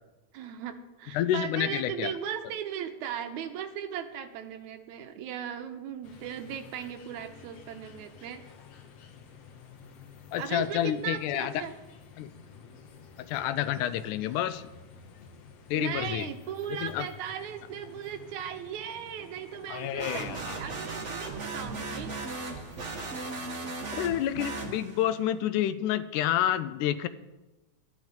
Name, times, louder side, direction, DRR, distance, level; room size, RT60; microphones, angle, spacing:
voice 1, 0.3-8.4 10.4-11.7 15.7-22.1, right 9 dB, 75° right, 7 dB, 2.2 m, -37 dB
voice 2, 1.1-2.1 10.3-11.6 12.2-12.3 13.2-14.6 15.7-16.3 16.7-17.1 19.7-20.6 23.9-27.1, left 11 dB, 85° left, 14 dB, 2.1 m, -29 dB
sound 1, 6.0-23.5, left 6 dB, 60° left, 2.0 m, -51 dB
sound 2, 20.0-25.2, right 3 dB, 45° right, 0.9 m, -37 dB
12.5 x 10.5 x 5.4 m, 1.1 s
omnidirectional pair, 3.6 m